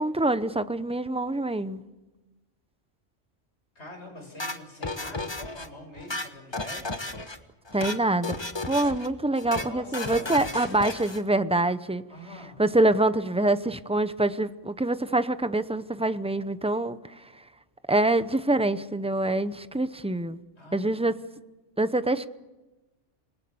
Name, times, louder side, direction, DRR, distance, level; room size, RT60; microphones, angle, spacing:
voice 1, 0.0-1.8 7.7-8.4 8.7-12.0 12.6-17.4 17.9-20.4 20.7-21.2 21.8-22.3, right 2 dB, 5° right, 12 dB, 0.5 m, -25 dB
voice 2, 3.7-7.3 9.4-10.8 12.1-12.6 20.6-21.1, left 1 dB, 60° left, 3 dB, 6.7 m, -44 dB
sound 1, 4.4-5.7 6.0-7.4 7.7-8.0 8.2-9.1 9.4-9.7 9.9-11.2, left 2 dB, 20° left, 1.3 m, -34 dB
27.0 x 20.5 x 7.0 m, 1.1 s
omnidirectional pair, 1.3 m